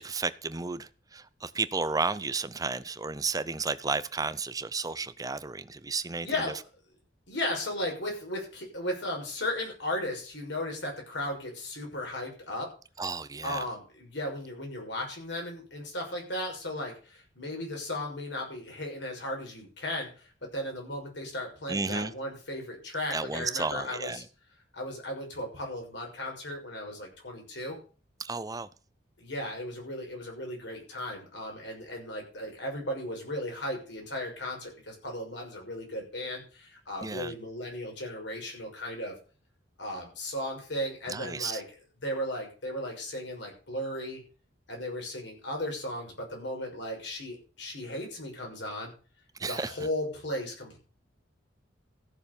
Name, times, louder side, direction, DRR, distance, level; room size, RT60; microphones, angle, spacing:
voice 1, 0.0-6.3 13.0-13.6 21.7-22.1 23.1-24.2 28.2-28.7 37.0-37.3 41.1-41.6 49.4-49.7, right 4 dB, 20° right, 0.7 m, -32 dB
voice 2, 6.2-6.6 7.3-12.7 13.4-24.2 24.7-27.8 29.2-39.1 39.8-41.7 42.0-44.2 44.7-48.9 49.4-50.8, left 1 dB, 65° left, 6.3 m, -36 dB
14.5 x 6.8 x 7.1 m
head